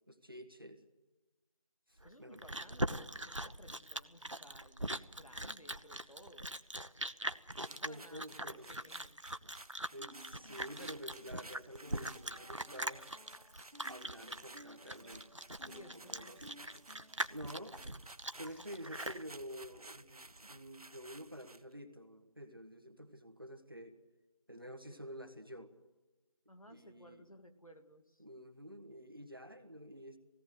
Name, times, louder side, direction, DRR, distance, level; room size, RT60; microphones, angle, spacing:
voice 1, 0.1-0.8 1.9-2.4 7.6-8.7 9.9-13.1 13.9-16.9 17.3-17.8 18.3-24.0 24.5-25.7 26.7-27.2 28.2-30.2, equal, 40° right, 6 dB, 1.6 m, -50 dB
voice 2, 2.0-6.6 7.6-9.2 15.7-16.3 26.5-28.2, equal, 70° left, 7 dB, 2.2 m, -58 dB
Chewing mastication, 2.0-19.2, right 1 dB, 60° right, 0.9 m, -41 dB
sound 1, 7.5-21.7, right 2 dB, 90° right, 0.7 m, -56 dB
sound 2, 9.9-17.3, right 1 dB, 75° right, 2.0 m, -58 dB
19.5 x 17.5 x 8.0 m, 1.1 s
figure-of-eight pair, 180°, 18 cm